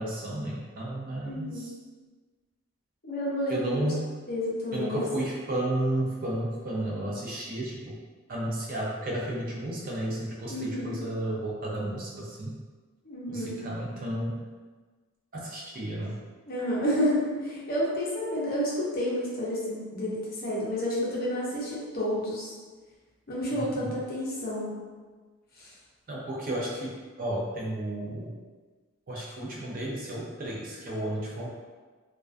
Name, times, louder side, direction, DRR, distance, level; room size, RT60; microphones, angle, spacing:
voice 1, 0.0-1.7 3.5-4.1 4.7-8.0 8.3-12.6 13.3-14.4 15.3-16.2 23.5-23.9 26.1-28.4 29.1-31.5, right 1 dB, 40° right, -4 dB, 0.4 m, -32 dB
voice 2, 1.2-1.7 3.0-3.7 4.3-5.0 10.5-11.0 13.0-13.6 16.5-22.5 23.3-24.8 25.6-25.7, equal, 45° left, -6 dB, 0.6 m, -30 dB
2.2 x 2.2 x 2.4 m, 1.4 s
head